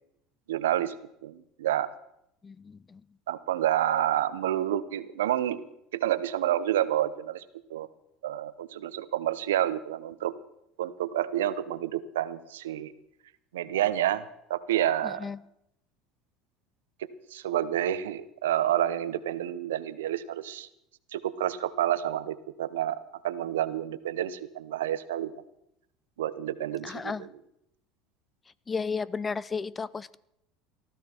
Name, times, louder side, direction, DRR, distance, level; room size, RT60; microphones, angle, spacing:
voice 1, 0.5-0.9 1.2-1.9 3.3-5.6 5.9-7.4 7.7-7.9 8.2-10.3 10.8-12.9 13.5-15.2 17.0-20.7 21.1-23.0 23.2-25.3 26.2-27.3, right 12 dB, 90° right, 15 dB, 0.8 m, -29 dB
voice 2, 2.4-3.0 15.0-15.4 26.8-27.3 28.7-30.2, left 5 dB, 25° left, 21 dB, 0.5 m, -33 dB
18.5 x 13.5 x 4.4 m, 0.80 s
hypercardioid pair, 90°, 0 cm